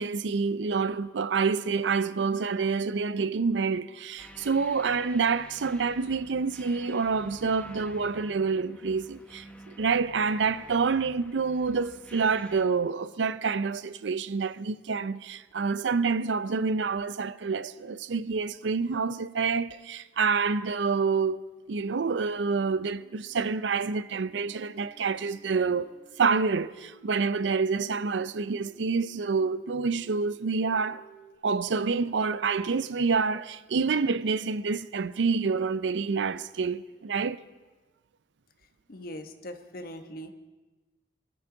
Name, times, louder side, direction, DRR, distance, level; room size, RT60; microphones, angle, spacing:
voice 1, 0.0-21.4 21.7-25.9 26.2-31.0 31.4-37.4, right 5 dB, 85° right, 0.5 m, -27 dB
sound 1, 4.2-12.6, equal, 10° left, 1.0 m, -50 dB
sound 2, 24.2-31.3, right 2 dB, 50° right, 2.8 m, -57 dB
voice 2, 38.9-40.3, equal, 55° left, 1.2 m, -41 dB
23.0 x 12.5 x 3.9 m
head